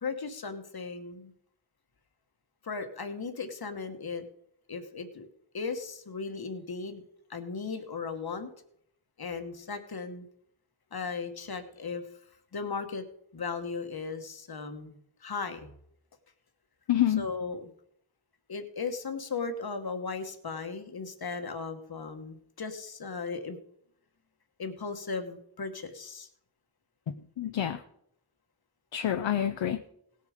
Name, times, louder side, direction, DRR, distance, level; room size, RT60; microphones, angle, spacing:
voice 1, 0.0-1.3 2.6-4.3 4.7-5.3 5.5-7.0 7.3-8.5 9.2-10.3 10.9-12.0 12.5-13.0 13.3-15.7 17.2-17.6 18.5-23.6 24.6-26.3, left 4 dB, 50° left, 8 dB, 1.2 m, -36 dB
voice 2, 16.9-17.3 27.1-27.8 28.9-29.8, left 11 dB, 70° left, 8 dB, 0.7 m, -28 dB
17.5 x 6.7 x 5.0 m, 0.72 s
wide cardioid pair, 115°, 47 cm